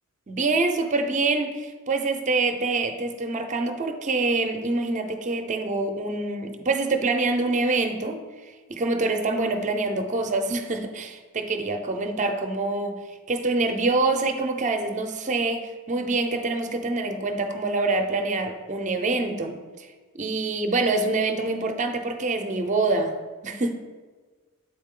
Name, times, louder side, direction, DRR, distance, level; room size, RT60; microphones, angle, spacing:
voice 1, 0.3-13.0 13.3-19.9 20.1-23.2 23.4-23.7, right 3 dB, 35° right, 5 dB, 0.6 m, -26 dB
8.7 x 4.1 x 3.7 m, 1.4 s
head